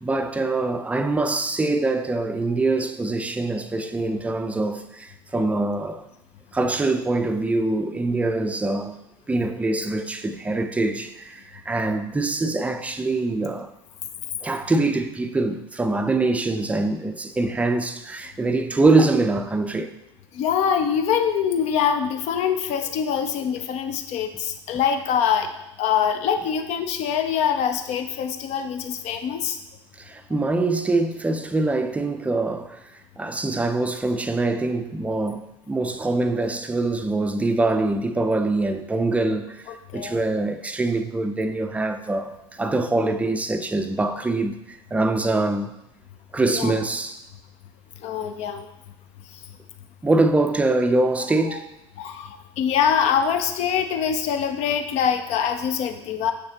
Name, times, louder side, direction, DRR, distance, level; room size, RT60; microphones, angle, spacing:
voice 1, 0.0-6.1 6.5-9.0 9.3-13.7 14.4-19.9 30.0-32.8 33.2-39.7 39.9-45.7 46.3-47.2 50.0-51.7, right 2 dB, 10° right, 0.5 m, -24 dB
voice 2, 20.3-25.5 25.8-29.6 39.9-40.2 46.5-46.7 48.0-48.7 52.0-56.3, left 8 dB, 50° left, 0.7 m, -24 dB
6.4 x 6.3 x 2.9 m
figure-of-eight pair, 70°, 14 cm